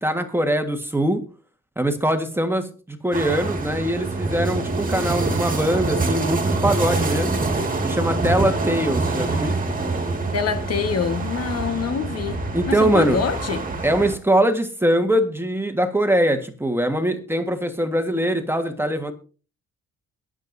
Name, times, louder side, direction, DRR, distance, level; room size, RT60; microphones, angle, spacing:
voice 1, 0.0-1.2 1.8-7.4 7.8-9.8 12.5-13.2 13.8-19.1, right 1 dB, 10° right, 1.5 m, -22 dB
sound 1, 3.1-14.2, right 3 dB, 25° right, 2.0 m, -25 dB
voice 2, 10.3-13.7, left 6 dB, 55° left, 1.4 m, -26 dB
22.0 x 7.5 x 2.7 m
cardioid pair, 90°, 30 cm